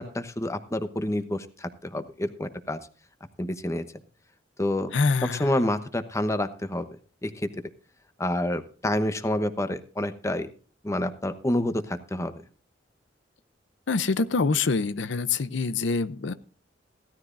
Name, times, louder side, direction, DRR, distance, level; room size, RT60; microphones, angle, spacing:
voice 1, 0.0-2.8 3.4-3.8 4.6-4.9 5.4-6.8 7.2-7.5 8.2-10.5 10.8-12.3, left 1 dB, 15° left, 10 dB, 0.9 m, -28 dB
voice 2, 4.9-5.6 13.9-16.3, left 4 dB, 75° left, 13 dB, 0.6 m, -25 dB
16.5 x 13.0 x 2.6 m, 0.39 s
head